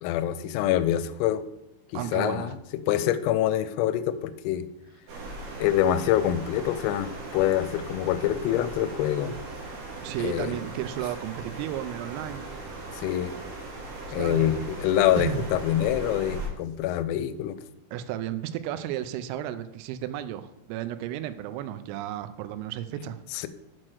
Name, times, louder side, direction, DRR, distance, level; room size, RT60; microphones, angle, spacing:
voice 1, 0.0-1.4 1.9-2.6 2.9-4.7 5.6-9.3 10.2-10.5 12.9-13.3 14.1-17.6 23.3-23.5, left 11 dB, 85° left, 13 dB, 3.2 m, -25 dB
voice 2, 1.9-2.6 10.0-12.5 14.2-14.6 15.2-15.4 17.9-23.2, right 12 dB, 85° right, 11 dB, 3.2 m, -33 dB
sound 1, 5.1-16.5, right 2 dB, 65° right, 2.9 m, -39 dB
7.5 x 4.5 x 6.2 m, 0.85 s
omnidirectional pair, 5.9 m